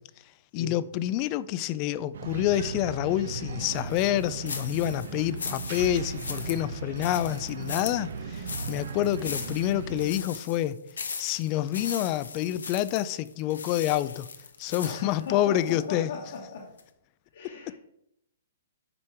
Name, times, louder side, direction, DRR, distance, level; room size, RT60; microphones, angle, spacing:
voice 1, 0.5-10.8 11.2-14.3 14.6-16.1, left 13 dB, 35° left, 0.4 m, -28 dB
sound 1, 2.1-10.1, right 4 dB, 70° right, 0.9 m, -37 dB
sound 2, 3.7-15.8 16.3-16.4 16.8-16.9, left 5 dB, 90° left, 1.2 m, -39 dB
voice 2, 14.8-16.7 17.3-17.8, left 4 dB, 70° left, 2.1 m, -38 dB
9.8 x 5.1 x 4.4 m
hypercardioid pair, 145°, 0 cm